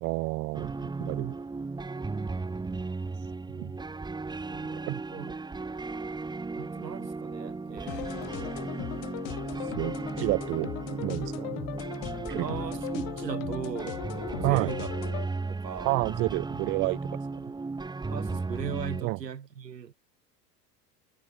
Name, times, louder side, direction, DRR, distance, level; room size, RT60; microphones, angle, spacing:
voice 1, 0.0-1.4 3.5-3.8 4.9-5.0 9.8-10.7 11.0-11.5 12.3-12.4 14.4-14.7 15.8-17.0 19.0-19.2, right 25 dB, 30° right, 0.3 m, -29 dB
sound 1, 0.5-19.0, right 3 dB, 10° right, 1.0 m, -35 dB
voice 2, 4.5-5.4 6.6-8.6 10.5-10.7 12.4-14.9 15.5-16.0 18.1-19.9, right 7 dB, 85° right, 2.1 m, -38 dB
sound 2, 7.9-15.2, left 36 dB, 50° left, 0.9 m, -38 dB
figure-of-eight pair, 75°, 48 cm